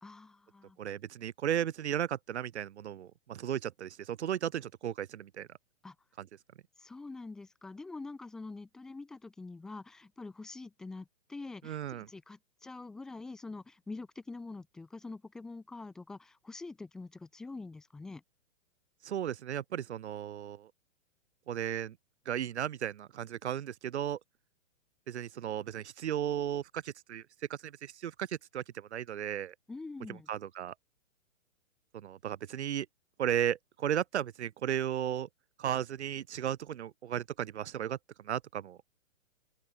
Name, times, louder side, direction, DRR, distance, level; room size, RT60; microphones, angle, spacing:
voice 1, 0.0-0.8 5.8-5.9 6.8-18.2 29.7-30.3, left 3 dB, ahead, 0.6 m, -45 dB
voice 2, 0.8-5.5 6.2-6.3 11.6-12.1 19.0-20.7 21.5-21.9 22.2-24.2 25.1-29.5 30.1-30.7 32.0-32.9 33.2-35.3 35.6-38.0 38.2-38.8, right 10 dB, 60° right, 1.4 m, -35 dB
open air
hypercardioid pair, 175°, 38 cm